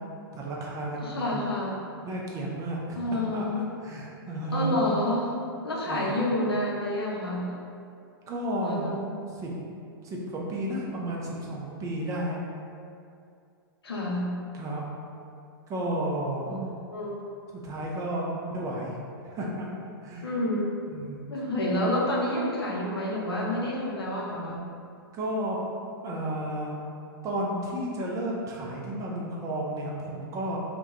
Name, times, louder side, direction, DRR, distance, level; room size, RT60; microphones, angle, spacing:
voice 1, 0.3-1.3 2.0-3.0 3.3-4.9 5.9-6.2 8.3-8.9 9.4-9.5 10.0-12.4 14.5-14.8 15.7-16.5 17.5-19.0 19.2-19.7 20.0-20.3 20.9-21.2 25.1-25.6 26.0-26.7 27.2-30.6, right 1 dB, 25° right, -3 dB, 0.5 m, -32 dB
voice 2, 1.0-1.8 2.9-3.6 4.5-5.3 5.6-7.5 8.6-9.1 13.8-14.3 16.4-16.6 16.9-17.2 20.2-20.7 21.3-24.6, left 1 dB, 90° left, -4 dB, 0.6 m, -28 dB
2.3 x 2.2 x 2.8 m, 2.4 s
hypercardioid pair, 115°, 13 cm